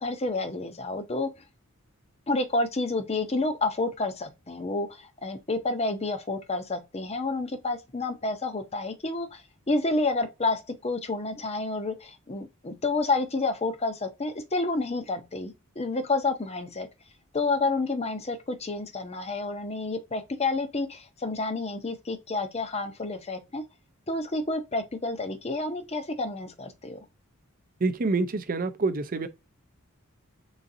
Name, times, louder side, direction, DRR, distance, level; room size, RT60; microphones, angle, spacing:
voice 1, 0.0-1.3 2.3-16.9 17.3-23.6 24.1-27.0, left 3 dB, 30° left, 0.7 m, -29 dB
voice 2, 27.8-29.3, right 3 dB, 40° right, 0.6 m, -27 dB
4.0 x 3.8 x 2.6 m
head